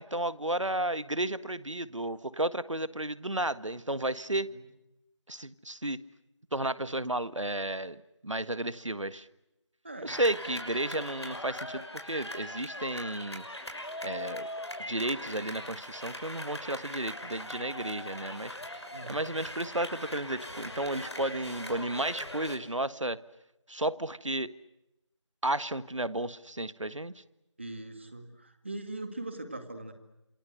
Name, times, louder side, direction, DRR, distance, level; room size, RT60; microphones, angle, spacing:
voice 1, 0.0-4.5 5.3-6.0 6.5-9.3 10.0-13.5 14.0-14.5 14.8-18.8 19.1-23.2 23.7-24.5 25.4-27.2, right 1 dB, 85° right, 15 dB, 1.6 m, -33 dB
voice 2, 9.8-10.2 18.9-19.2 27.6-29.9, right 2 dB, 25° right, 8 dB, 2.1 m, -41 dB
sound 1, 10.1-22.6, left 1 dB, 60° left, 6.1 m, -41 dB
28.0 x 26.5 x 8.0 m, 0.92 s
figure-of-eight pair, 175°, 16 cm